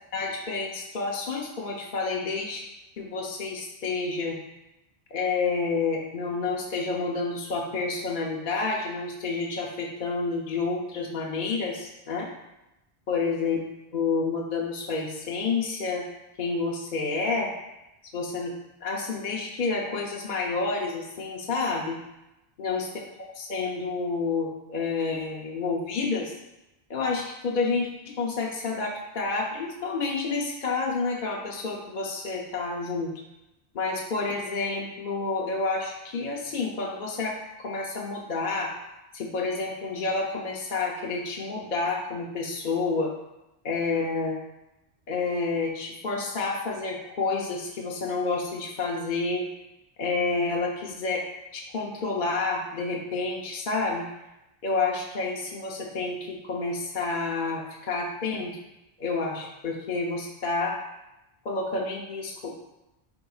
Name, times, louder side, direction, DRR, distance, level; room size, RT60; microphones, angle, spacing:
voice 1, 0.1-2.6 3.0-4.4 5.1-12.3 13.1-13.6 13.9-16.1 16.4-17.5 18.1-18.5 18.8-22.0 22.6-23.0 23.3-26.3 26.9-33.1 33.7-38.8 39.1-43.1 43.6-44.4 45.1-49.5 50.0-54.0 54.6-58.6 59.0-60.8 61.4-62.6, left 4 dB, 50° left, -2 dB, 0.8 m, -29 dB
10.5 x 4.0 x 2.4 m, 0.93 s
omnidirectional pair, 1.1 m